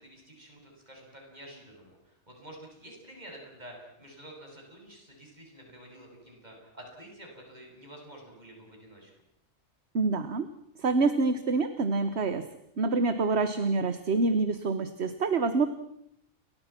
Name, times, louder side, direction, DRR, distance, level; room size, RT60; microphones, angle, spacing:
voice 1, 0.0-9.1, right 1 dB, 30° right, 0 dB, 8.0 m, -49 dB
voice 2, 9.9-10.5 10.8-12.5 12.8-15.7, right 3 dB, 50° right, 11 dB, 1.5 m, -26 dB
29.5 x 22.5 x 6.0 m, 0.73 s
omnidirectional pair, 1.4 m